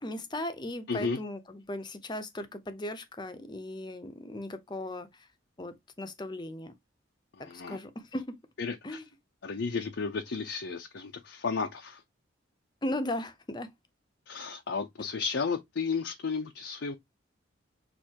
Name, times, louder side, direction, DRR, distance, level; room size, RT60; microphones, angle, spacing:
voice 1, 0.0-5.3 5.6-6.7 7.5-8.4 8.8-9.0 12.8-13.7, left 1 dB, 20° left, 0.7 m, -37 dB
voice 2, 7.4-7.8 8.6-8.7 9.4-12.0 14.3-17.0, left 5 dB, 65° left, 0.5 m, -33 dB
6.4 x 2.5 x 2.9 m
head